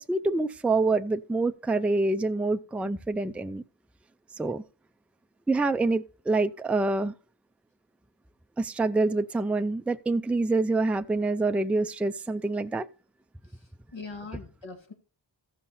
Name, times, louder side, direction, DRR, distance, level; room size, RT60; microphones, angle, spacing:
voice 1, 0.0-3.6 4.4-4.6 5.5-7.1 8.6-12.9, right 3 dB, 5° right, 0.4 m, -26 dB
voice 2, 13.4-14.9, left 4 dB, 70° left, 2.4 m, -42 dB
14.5 x 5.6 x 4.2 m
wide cardioid pair, 75°, 47 cm